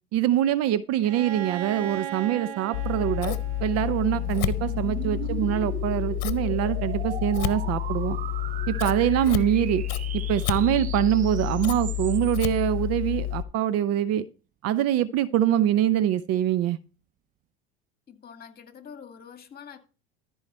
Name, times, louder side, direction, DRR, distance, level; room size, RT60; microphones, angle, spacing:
voice 1, 0.1-8.2 8.7-9.9 10.3-14.3 14.6-16.8, right 11 dB, 50° right, 0.7 m, -24 dB
Bowed string instrument, 1.0-4.8, right 10 dB, 85° right, 1.1 m, -37 dB
Scissors, 2.7-13.4, left 12 dB, 75° left, 0.9 m, -29 dB
sound 1, 3.5-12.6, right 10 dB, 25° right, 0.4 m, -40 dB
voice 2, 5.2-5.6 18.1-19.8, left 7 dB, 30° left, 2.1 m, -46 dB
14.0 x 4.8 x 4.3 m
hypercardioid pair, 90°, 31 cm